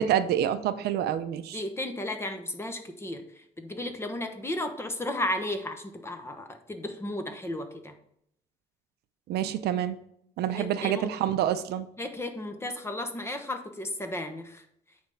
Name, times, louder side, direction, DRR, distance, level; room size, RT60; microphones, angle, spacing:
voice 1, 0.0-1.6 9.3-10.0 10.4-11.9, right 10 dB, 75° right, 11 dB, 0.7 m, -27 dB
voice 2, 1.5-3.2 3.6-7.9 10.5-11.1 12.0-14.6, left 1 dB, 15° left, 6 dB, 1.1 m, -34 dB
8.8 x 3.6 x 5.6 m, 0.72 s
cardioid pair, 110°, 17 cm